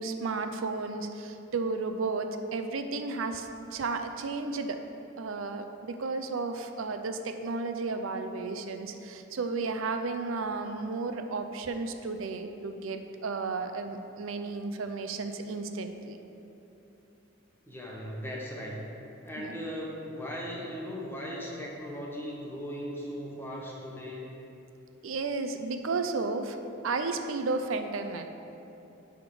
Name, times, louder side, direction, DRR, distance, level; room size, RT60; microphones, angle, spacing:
voice 1, 0.0-4.8 5.2-16.2 19.4-19.6 25.0-26.6 26.8-28.3, right 3 dB, 80° right, 7 dB, 0.5 m, -33 dB
voice 2, 17.7-18.9 19.2-24.3, equal, 10° left, -3 dB, 1.2 m, -38 dB
10.5 x 3.6 x 6.9 m, 2.9 s
head